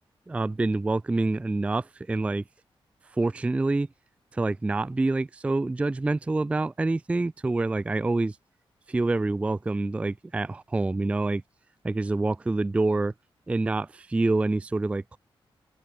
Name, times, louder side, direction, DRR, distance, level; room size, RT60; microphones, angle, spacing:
voice 1, 0.3-2.4 3.2-3.9 4.3-8.4 8.9-11.4 11.8-13.1 13.5-15.2, right 2 dB, 15° right, 0.3 m, -26 dB
open air
wide cardioid pair, 175°, 9 cm